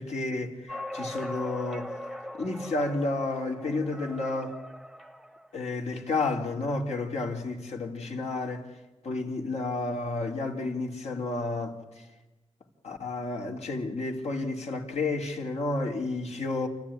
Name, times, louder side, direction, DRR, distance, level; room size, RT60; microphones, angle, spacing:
voice 1, 0.0-1.9 2.3-4.6 5.5-8.7 9.0-12.1 12.8-16.7, left 3 dB, 75° left, 2.8 m, -31 dB
sound 1, 0.7-5.5, left 1 dB, ahead, 0.9 m, -40 dB
29.0 x 13.5 x 9.8 m
wide cardioid pair, 90°, 11 cm